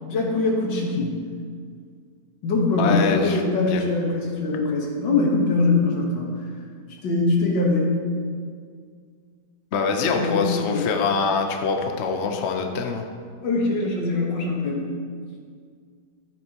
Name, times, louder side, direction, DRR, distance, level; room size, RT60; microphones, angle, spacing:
voice 1, 0.0-1.2 2.4-6.3 7.0-7.9 10.1-10.9 13.4-14.9, left 3 dB, 75° left, -1 dB, 2.1 m, -22 dB
voice 2, 2.8-3.4 3.7-3.8 9.7-13.0, left 5 dB, 55° left, 3 dB, 0.8 m, -24 dB
12.5 x 9.0 x 3.0 m, 2.1 s
omnidirectional pair, 2.0 m